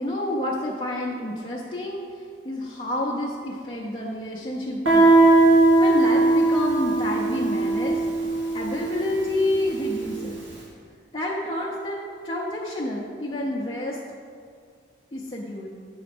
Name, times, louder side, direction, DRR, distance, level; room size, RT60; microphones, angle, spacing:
voice 1, 0.0-5.1 5.8-8.0 8.5-10.4 11.1-12.0 12.2-14.0 15.1-15.7, left 1 dB, 30° left, -5 dB, 0.7 m, -29 dB
Guitar, 4.9-10.3, right 2 dB, 85° right, 1.8 m, -19 dB
7.8 x 4.0 x 6.0 m, 2.2 s
head